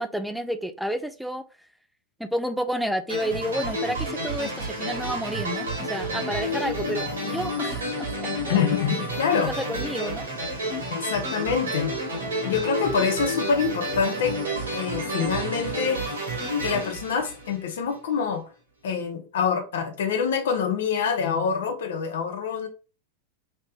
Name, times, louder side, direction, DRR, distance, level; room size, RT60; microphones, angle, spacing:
voice 1, 0.0-1.5 2.2-8.6 9.4-10.3, equal, ahead, 0.3 m, -30 dB
sound 1, 3.1-17.9, equal, 70° right, 1.0 m, -30 dB
voice 2, 8.5-9.5 10.9-11.9 12.4-14.4 14.7-16.0 16.6-18.4 18.8-22.7, left 6 dB, 60° left, 0.7 m, -26 dB
3.2 x 2.9 x 2.3 m
figure-of-eight pair, 90°, 0 cm